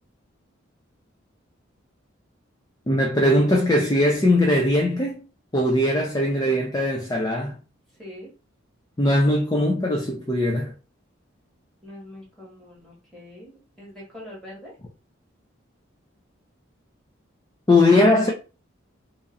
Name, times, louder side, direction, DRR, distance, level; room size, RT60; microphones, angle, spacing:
voice 1, 2.9-5.2 5.5-7.6 9.0-10.7 17.7-18.3, left 1 dB, 20° left, 0.5 m, -20 dB
voice 2, 8.0-8.3 11.8-14.7, left 1 dB, ahead, 1.8 m, -43 dB
3.0 x 2.7 x 3.8 m
head